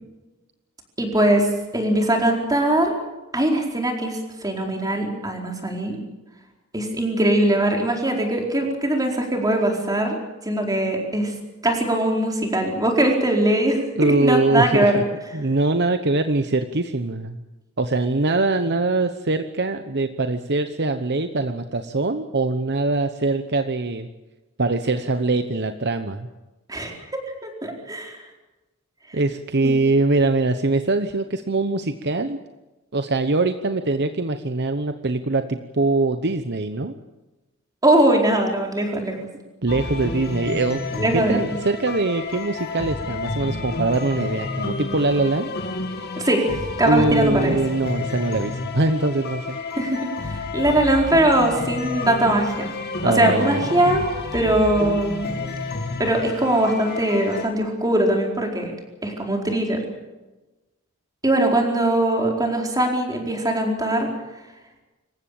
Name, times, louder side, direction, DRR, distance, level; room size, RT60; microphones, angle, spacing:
voice 1, 1.0-1.5 1.7-2.9 3.3-6.0 6.7-10.2 10.4-11.3 11.6-14.9 26.7-26.9 27.4-28.2 29.6-29.8 37.8-39.2 40.9-41.5 46.2-46.4 46.8-47.6 49.8-52.7 53.0-54.0 54.3-55.3 56.0-58.7 59.0-59.8 61.2-64.1, right 1 dB, 15° right, 1 dB, 4.5 m, -21 dB
voice 2, 14.0-15.0 15.3-17.4 17.8-24.1 24.6-26.3 29.1-32.4 32.9-37.0 39.6-40.8 41.1-45.5 46.8-49.6 53.0-54.0, right 2 dB, 50° right, 8 dB, 1.0 m, -22 dB
sound 1, 39.7-57.5, left 3 dB, 50° left, 2.6 m, -30 dB
26.5 x 15.0 x 8.8 m, 1.1 s
head